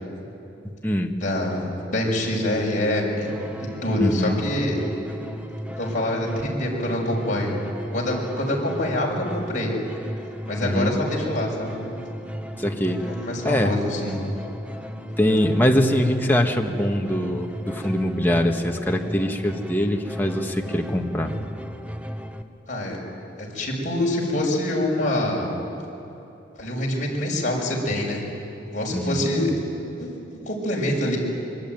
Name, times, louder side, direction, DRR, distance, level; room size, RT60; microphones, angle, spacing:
voice 1, 1.2-3.3 3.6-4.8 5.8-7.6 7.9-9.7 10.5-11.7 13.0-14.1 22.7-23.0 23.4-25.5 26.6-28.2 28.7-29.5 30.0-30.1 30.4-31.2, left 1 dB, 40° left, -2 dB, 6.0 m, -25 dB
sound 1, 3.2-22.4, equal, 5° right, 1.0 m, -35 dB
voice 2, 4.0-4.4 10.7-10.9 12.6-13.0 13.4-13.8 15.2-21.3 28.9-29.2, equal, 10° left, 2 dB, 1.6 m, -23 dB
25.0 x 23.0 x 9.3 m, 2.9 s
head